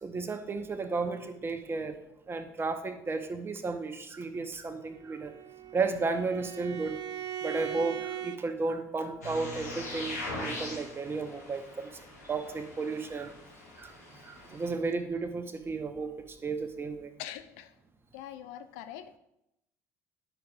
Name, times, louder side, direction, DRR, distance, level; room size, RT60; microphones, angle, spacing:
voice 1, 0.0-2.0 2.3-5.3 5.7-6.9 7.4-11.9 12.3-13.4 13.8-17.1, right 4 dB, 30° right, 8 dB, 0.9 m, -33 dB
Bowed string instrument, 4.9-8.4, right 11 dB, 50° right, 0.5 m, -39 dB
sound 1, 9.2-14.7, left 2 dB, 85° left, 1.5 m, -41 dB
voice 2, 17.2-17.8 18.1-19.2, left 11 dB, 65° left, 10 dB, 0.4 m, -43 dB
10.0 x 6.2 x 2.4 m, 0.85 s
figure-of-eight pair, 55°, 8 cm